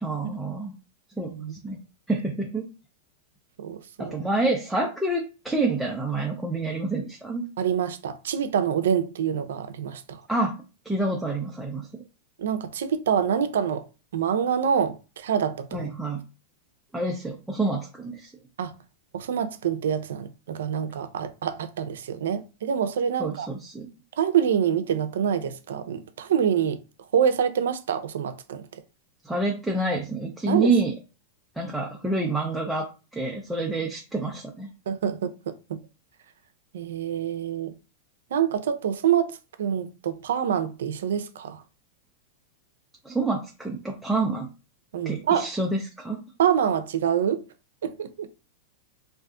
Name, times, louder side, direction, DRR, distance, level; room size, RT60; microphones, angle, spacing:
voice 1, 0.0-0.7 1.2-1.3 1.6-1.8 2.1-2.7 4.0-7.5 10.3-10.6 10.8-12.0 15.7-16.2 16.9-18.3 23.2-23.9 29.2-30.9 31.6-32.9 33.1-34.7 43.0-44.5 45.1-46.2, right 2 dB, 5° right, 0.5 m, -27 dB
voice 2, 3.6-4.2 7.6-10.2 12.4-13.9 14.1-15.9 18.6-18.7 19.1-23.5 24.2-26.8 27.1-28.8 30.5-30.7 34.9-35.8 36.7-37.7 38.3-41.6 44.9-45.5 46.4-47.4 47.8-48.3, right 8 dB, 85° right, 0.4 m, -26 dB
2.5 x 2.3 x 3.6 m
supercardioid pair, 130°, 0 cm